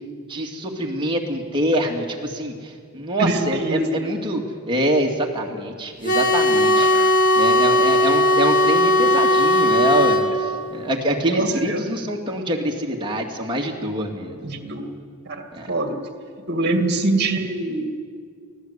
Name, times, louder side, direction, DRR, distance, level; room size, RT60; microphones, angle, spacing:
voice 1, 0.3-6.9 7.3-14.6 15.5-15.7, right 1 dB, 20° right, 0 dB, 2.5 m, -25 dB
voice 2, 3.2-4.1 6.7-7.1 11.3-11.8 14.4-14.9 15.3-16.0 16.5-17.9, right 2 dB, 50° right, 6 dB, 2.3 m, -24 dB
sound 1, 6.0-10.2, left 1 dB, 40° left, 2.2 m, -17 dB
24.0 x 16.0 x 8.3 m, 2.1 s
head